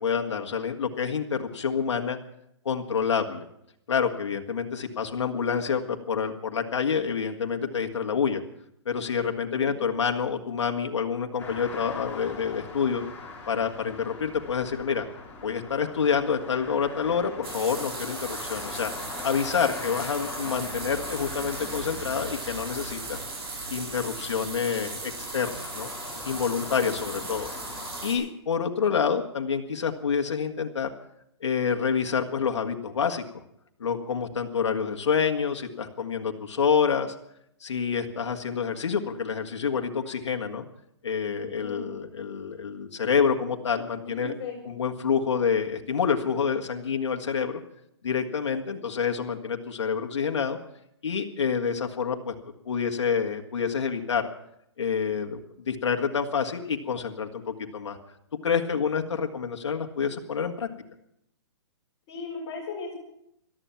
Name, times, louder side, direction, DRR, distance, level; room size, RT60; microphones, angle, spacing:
voice 1, 0.0-2.2 2.7-3.5 3.9-8.4 8.9-13.0 13.5-15.1 15.4-18.9 19.2-23.2 23.7-25.9 26.3-27.5 28.0-30.9 31.4-33.2 33.8-37.1 37.6-40.6 41.0-44.3 44.6-47.6 48.0-50.6 51.0-52.3 52.7-54.3 54.8-55.4 55.7-58.0 58.4-60.7, left 6 dB, 80° left, 4 dB, 1.8 m, -27 dB
sound 1, 11.4-28.1, left 3 dB, 10° left, 3.9 m, -40 dB
sound 2, 17.4-28.1, right 4 dB, 55° right, 7.4 m, -38 dB
voice 2, 41.6-42.0 44.0-44.6 62.1-63.0, left 4 dB, 35° left, -5 dB, 5.9 m, -37 dB
18.0 x 13.0 x 5.9 m, 0.77 s
hypercardioid pair, 150°, 15 cm